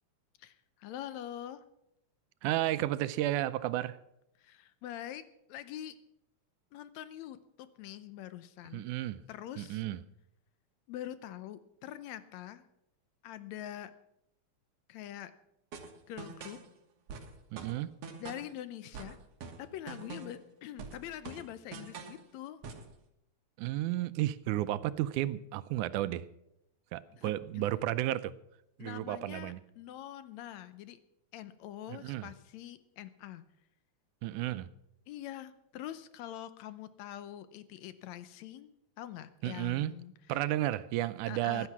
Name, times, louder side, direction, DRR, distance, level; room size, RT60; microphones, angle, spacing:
voice 1, 0.4-1.6 4.4-5.2 5.5-6.0 6.7-8.9 9.3-9.8 10.9-12.7 13.2-13.9 14.9-15.3 16.1-16.6 18.2-19.2 19.6-22.6 27.1-27.7 28.8-31.0 31.3-33.4 35.1-40.4 41.3-41.7, left 12 dB, 75° left, 13 dB, 1.9 m, -44 dB
voice 2, 2.4-4.0 8.7-9.2 9.6-10.0 17.5-17.9 23.6-26.3 26.9-28.3 28.8-29.6 31.9-32.3 34.2-34.7 39.4-39.9 40.3-41.7, right 14 dB, 90° right, 15 dB, 2.2 m, -32 dB
sound 1, 15.7-16.7 17.1-18.6 18.9-20.5 20.8-22.2 22.6-22.9, right 5 dB, 60° right, 2.3 m, -45 dB
15.5 x 11.5 x 6.1 m, 0.82 s
omnidirectional pair, 3.4 m